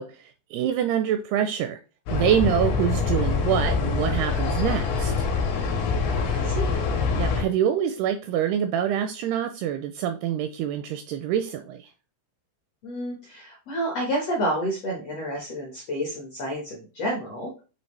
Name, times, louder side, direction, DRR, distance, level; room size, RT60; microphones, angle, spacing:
voice 1, 0.0-1.8 2.1-5.1 7.2-11.9, right 9 dB, 85° right, 8 dB, 2.3 m, -26 dB
sound 1, 2.1-7.4, left 5 dB, 90° left, 3.6 m, -25 dB
voice 2, 6.3-6.7 12.8-17.5, equal, 75° left, -1 dB, 1.4 m, -29 dB
8.9 x 3.3 x 3.2 m, 0.35 s
omnidirectional pair, 5.0 m